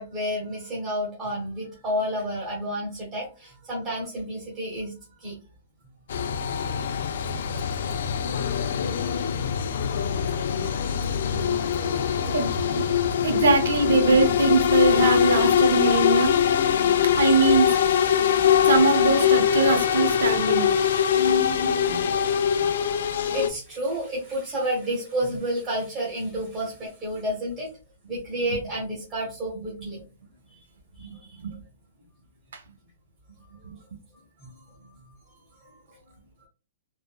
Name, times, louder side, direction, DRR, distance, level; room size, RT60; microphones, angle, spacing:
voice 1, 0.0-4.9 5.2-5.4 18.6-18.7 21.2-21.6 21.9-22.1 22.6-22.7 23.3-27.7 28.1-30.0 31.0-31.4, equal, 20° right, -5 dB, 0.9 m, -30 dB
sound 1, 6.1-23.5, left 8 dB, 65° left, 0.4 m, -23 dB
voice 2, 13.2-16.3 17.2-17.7 18.7-20.7 31.4-31.5, right 3 dB, 85° right, 5 dB, 0.8 m, -21 dB
3.4 x 2.1 x 2.2 m, 0.33 s
hypercardioid pair, 160°, 0 cm